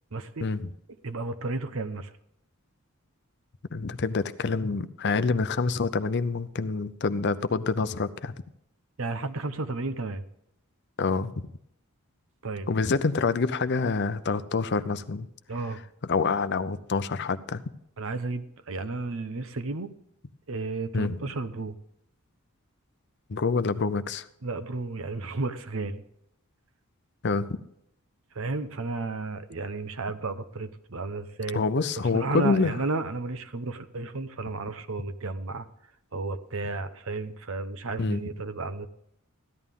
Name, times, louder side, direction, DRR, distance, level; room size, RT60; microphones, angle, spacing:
voice 1, 0.1-0.5 1.0-2.1 9.0-10.2 12.4-12.7 15.5-15.8 18.0-19.9 20.5-21.8 24.4-26.0 28.3-31.6 32.0-35.7 36.1-38.9, right 3 dB, 65° right, 11 dB, 0.8 m, -33 dB
voice 2, 3.7-8.3 11.0-11.5 12.7-15.3 16.0-17.6 20.9-21.2 23.3-24.3 27.2-27.5 31.5-32.7 38.0-38.3, left 4 dB, 50° left, 13 dB, 0.6 m, -27 dB
14.0 x 11.0 x 3.6 m, 0.76 s
head